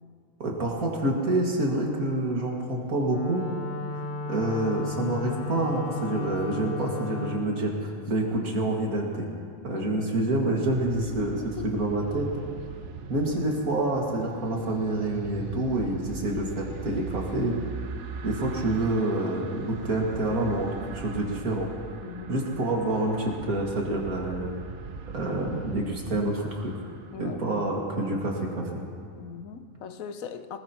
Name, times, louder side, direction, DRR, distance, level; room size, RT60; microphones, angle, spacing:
voice 1, 0.4-3.5 4.3-9.3 9.6-11.4 11.6-12.3 13.1-17.6 18.2-21.7 22.3-24.5 25.1-26.7 27.2-28.8, right 1 dB, 85° right, -1 dB, 2.5 m, -27 dB
Wind instrument woodwind instrument, 3.0-7.5, left 3 dB, 45° left, 0.7 m, -34 dB
voice 2, 9.7-10.1 11.0-11.8 22.0-22.4 27.1-27.4 29.2-30.6, left 7 dB, 75° left, 9 dB, 1.2 m, -39 dB
sound 1, 10.7-27.6, right 6 dB, 60° right, 1.0 m, -40 dB
21.0 x 18.5 x 2.9 m, 2.3 s
omnidirectional pair, 1.5 m